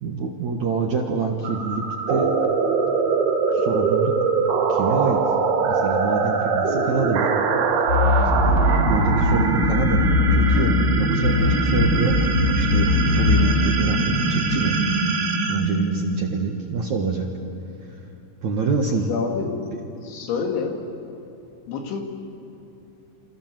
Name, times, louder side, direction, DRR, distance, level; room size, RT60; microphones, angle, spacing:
voice 1, 0.0-2.3 3.1-3.2 3.5-4.1 4.7-5.2 5.7-7.3 8.3-8.6 8.9-12.2 12.6-14.8 15.5-17.3 18.4-19.1, right 5 dB, 60° right, 2 dB, 2.0 m, -26 dB
sound 1, 1.4-16.6, right 4 dB, 85° right, 4.9 m, -22 dB
sound 2, 7.9-11.0 11.2-13.8, left 3 dB, 30° left, 3.9 m, -21 dB
voice 2, 19.1-19.6 20.0-20.8 21.7-22.1, left 5 dB, 85° left, 3 dB, 4.7 m, -27 dB
28.5 x 26.5 x 7.6 m, 2.8 s
omnidirectional pair, 5.2 m